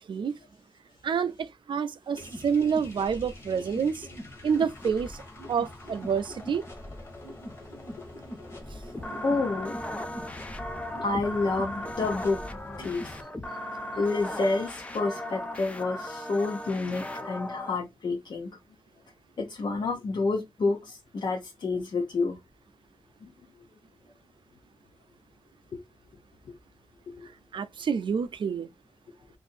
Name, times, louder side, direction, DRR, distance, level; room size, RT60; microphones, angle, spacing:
voice 1, 1.0-4.1 4.4-5.2 5.5-6.7 9.0-9.1 27.5-28.7, right 6 dB, 65° right, 0.4 m, -28 dB
sound 1, 2.1-13.2, left 1 dB, 30° left, 1.0 m, -43 dB
sound 2, 8.9-17.8, left 1 dB, 15° left, 0.4 m, -37 dB
voice 2, 9.2-9.8 11.0-12.4 12.8-13.2 14.0-18.5 19.4-22.4 23.2-23.3, left 3 dB, 55° left, 0.7 m, -29 dB
2.7 x 2.5 x 4.1 m
wide cardioid pair, 180°, 9 cm